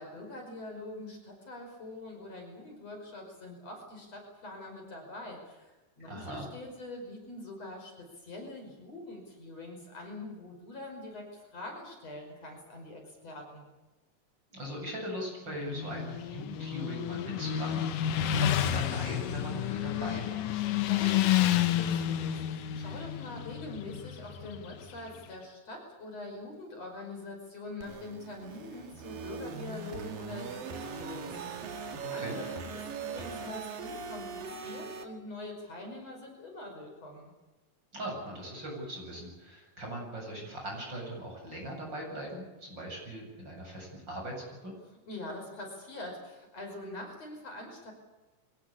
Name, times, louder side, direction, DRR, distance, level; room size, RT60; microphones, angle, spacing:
voice 1, 0.0-13.6 20.9-37.3 45.1-47.9, left 2 dB, 50° left, 2 dB, 6.4 m, -44 dB
voice 2, 6.1-6.5 14.5-20.5 32.0-32.4 37.9-44.7, right 1 dB, 30° right, 0 dB, 8.6 m, -40 dB
Motorcycle, 15.5-25.3, left 11 dB, 75° left, 2.6 m, -30 dB
sound 1, 27.8-35.0, right 5 dB, 85° right, 3.7 m, -40 dB
24.0 x 19.0 x 8.7 m, 1.1 s
omnidirectional pair, 3.9 m